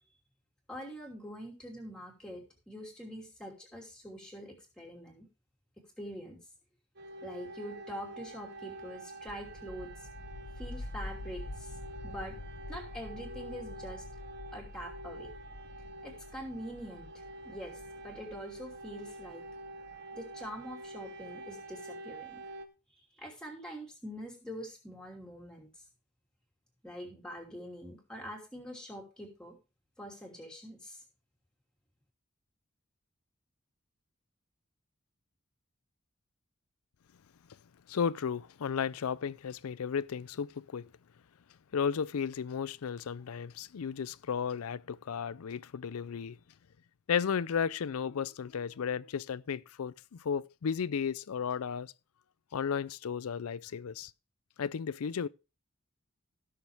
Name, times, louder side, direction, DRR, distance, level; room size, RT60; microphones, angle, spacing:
voice 1, 0.7-5.3 5.8-6.4 7.2-9.9 10.6-11.7 12.0-12.4 12.7-14.0 14.5-15.3 16.0-19.4 20.1-22.4 23.2-25.7 26.8-29.6 30.0-31.0, equal, 5° left, 2.9 m, -44 dB
sound 1, 7.0-22.7, right 2 dB, 50° right, 1.0 m, -47 dB
sound 2, 9.3-20.0, left 2 dB, 55° left, 0.9 m, -46 dB
voice 2, 37.9-40.9 41.7-46.4 47.1-51.9 52.5-54.1 54.6-55.3, left 7 dB, 85° left, 0.5 m, -34 dB
16.0 x 6.5 x 3.4 m
head